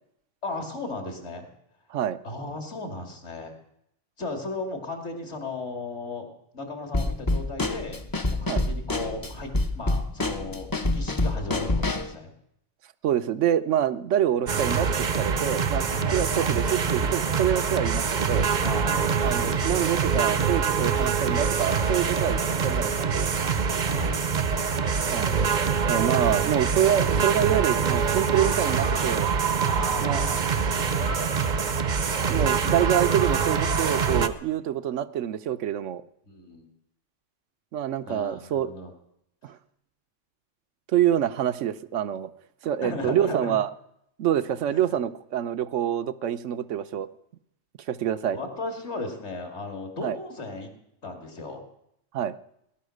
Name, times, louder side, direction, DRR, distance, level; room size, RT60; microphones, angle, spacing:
voice 1, 0.4-1.5 2.2-3.5 4.2-6.3 6.5-8.0 8.3-12.3 15.9-16.2 18.6-20.2 23.8-24.2 29.6-31.1 36.3-36.7 38.0-38.9 42.8-43.5 44.7-44.9 48.3-50.7 51.0-51.7, left 2 dB, 60° left, 4 dB, 3.0 m, -36 dB
Drum kit / Snare drum, 6.9-12.1, left 2 dB, 20° left, 0.8 m, -27 dB
voice 2, 13.0-14.9 15.2-15.9 16.1-18.5 19.2-23.3 25.1-25.3 25.9-29.3 30.0-30.2 32.3-36.0 37.7-38.7 39.4-39.6 40.9-42.3 42.6-43.7 44.2-47.1 47.9-48.4 50.0-50.2 52.1-52.4, right 10 dB, 75° right, 14 dB, 1.1 m, -26 dB
sound 1, 14.5-34.3, right 6 dB, 40° right, 0.8 m, -25 dB
18.5 x 11.5 x 6.5 m, 0.78 s
omnidirectional pair, 1.3 m